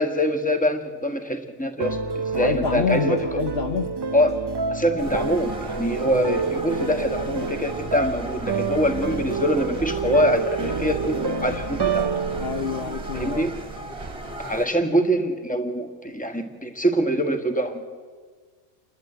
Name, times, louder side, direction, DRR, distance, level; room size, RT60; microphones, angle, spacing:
voice 1, 0.0-3.4 4.1-4.4 4.7-12.1 13.1-13.5 14.4-17.9, equal, 5° left, 5 dB, 1.6 m, -24 dB
sound 1, 1.8-13.9, right 5 dB, 40° right, 0.3 m, -28 dB
voice 2, 2.4-4.0 12.4-13.5, left 6 dB, 60° left, 7 dB, 1.0 m, -27 dB
sound 2, 5.0-14.7, right 1 dB, 25° right, 1.9 m, -36 dB
29.0 x 12.0 x 8.0 m, 1.5 s
omnidirectional pair, 1.3 m